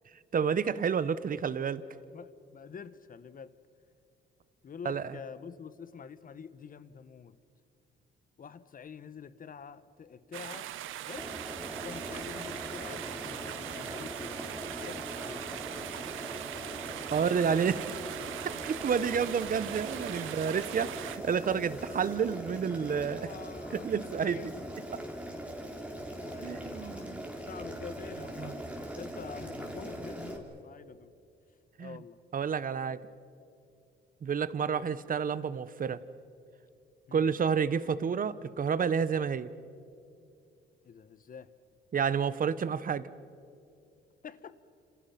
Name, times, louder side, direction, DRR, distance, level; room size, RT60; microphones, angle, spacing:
voice 1, 0.3-1.8 4.8-5.2 17.1-17.8 18.6-23.3 23.8-24.4 26.4-27.3 28.4-28.5 31.8-32.0 32.3-33.0 34.2-36.0 37.1-39.5 41.9-43.1, right 6 dB, 45° right, 16 dB, 1.0 m, -30 dB
voice 2, 2.1-3.5 4.6-7.4 8.4-10.7 11.1-11.3 11.8-14.4 14.7-15.5 17.1-17.4 20.2-20.3 23.2-24.7 26.2-31.1 31.8-32.2 34.7-34.9 37.1-37.3 40.8-41.5 44.2-44.6, left 6 dB, 45° left, 15 dB, 1.2 m, -47 dB
sound 1, 10.3-21.2, right 13 dB, 85° right, 0.9 m, -41 dB
sound 2, 11.0-22.2, left 7 dB, 80° left, 3.0 m, -59 dB
Boiling, 11.2-30.4, right 1 dB, 5° right, 3.9 m, -41 dB
29.0 x 27.5 x 5.9 m, 2.6 s
cardioid pair, 90°, 20 cm